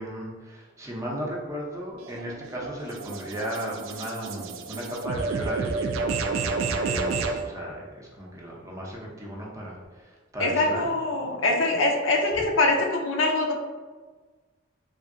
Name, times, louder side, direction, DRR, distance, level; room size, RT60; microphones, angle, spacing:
voice 1, 0.0-10.8, equal, 15° right, -4 dB, 0.5 m, -35 dB
sound 1, 2.0-7.4, right 4 dB, 75° right, 0.3 m, -30 dB
voice 2, 10.4-13.5, left 2 dB, 70° left, 1 dB, 0.5 m, -23 dB
3.1 x 2.6 x 2.5 m, 1.4 s
head